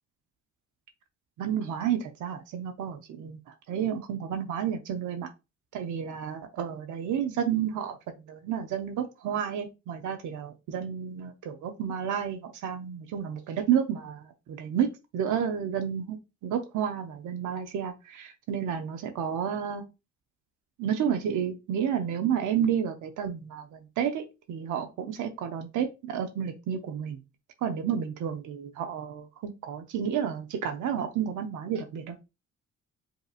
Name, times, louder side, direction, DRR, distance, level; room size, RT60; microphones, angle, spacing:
voice 1, 1.4-5.3 5.7-14.9 15.1-19.8 20.8-27.2 27.6-32.2, right 8 dB, 80° right, 0.7 m, -31 dB
5.4 x 2.9 x 2.4 m
cardioid pair, 90°, 30 cm